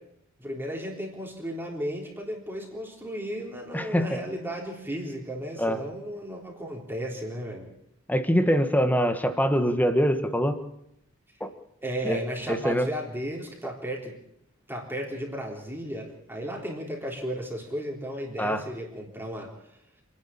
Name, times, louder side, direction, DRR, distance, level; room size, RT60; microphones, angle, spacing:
voice 1, 0.4-7.7 11.8-14.2 14.7-19.5, equal, 10° right, -1 dB, 3.7 m, -34 dB
voice 2, 3.7-4.1 5.6-5.8 8.1-10.6 11.4-11.5 12.0-12.2 12.5-12.9 18.4-18.6, equal, 10° left, 9 dB, 1.4 m, -23 dB
27.5 x 11.0 x 8.8 m, 0.81 s
head